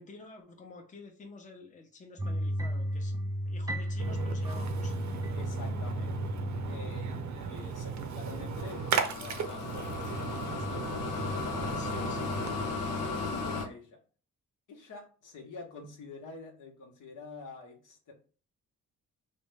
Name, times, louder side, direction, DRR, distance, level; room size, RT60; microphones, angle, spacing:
voice 1, 0.0-5.0 11.8-12.4, left 3 dB, 25° left, 3 dB, 0.7 m, -50 dB
sound 1, 2.2-7.2, equal, 10° right, 0.4 m, -34 dB
Splash splatter, 4.0-12.7, right 6 dB, 60° right, 0.6 m, -36 dB
voice 2, 5.3-6.3 6.7-7.1 7.4-12.5 12.9-14.0 14.7-18.1, left 3 dB, 65° left, 2 dB, 0.9 m, -47 dB
sound 2, 8.5-13.7, left 4 dB, 90° left, 0.6 m, -35 dB
3.3 x 2.1 x 3.3 m, 0.38 s
cardioid pair, 70°, 33 cm